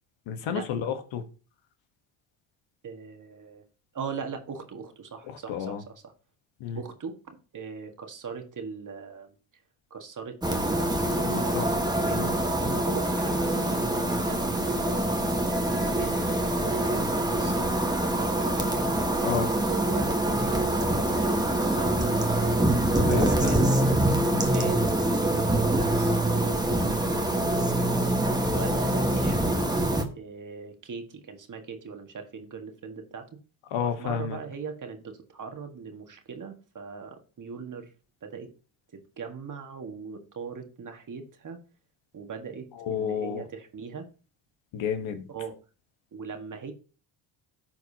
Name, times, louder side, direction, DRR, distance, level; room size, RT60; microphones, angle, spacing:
voice 1, 0.3-1.2 5.3-5.8 6.6-6.8 11.2-11.6 12.1-12.4 19.2-19.5 23.1-23.7 24.3-24.5 33.7-34.4 42.8-43.4 44.7-45.2, left 8 dB, 70° left, 1.3 m, -31 dB
voice 2, 2.8-3.6 3.9-5.8 6.0-6.1 6.7-9.4 9.9-11.6 12.0-12.3 12.8-13.9 14.3-14.8 15.2-19.0 19.7-22.4 23.4-23.7 24.5-27.7 28.5-29.7 30.1-33.3 34.0-37.9 38.2-38.5 38.9-41.6 42.1-44.1 45.3-45.6 46.1-46.7, right 5 dB, 40° right, 1.8 m, -40 dB
sound 1, 10.4-30.0, right 1 dB, 10° right, 1.4 m, -25 dB
13.5 x 4.7 x 2.8 m
supercardioid pair, 75°, 49 cm